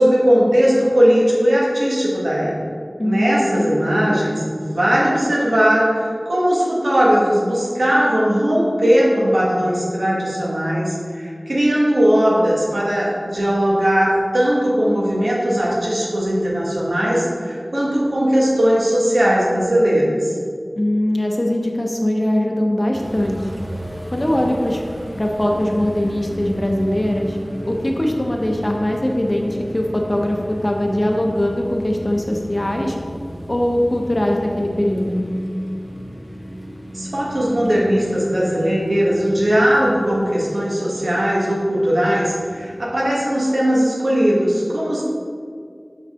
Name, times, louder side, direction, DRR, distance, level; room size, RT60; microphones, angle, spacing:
voice 1, 0.0-2.5 3.0-20.3 36.9-45.0, equal, 85° right, -5 dB, 1.5 m, -18 dB
voice 2, 3.0-3.7 20.8-23.4 24.1-24.8 25.2-27.4 27.6-33.0 33.5-35.2, left 1 dB, 35° left, 1 dB, 0.9 m, -21 dB
sound 1, 22.9-42.9, equal, 15° right, 0.7 m, -34 dB
6.1 x 5.4 x 3.7 m, 2.2 s
wide cardioid pair, 40°, 0 cm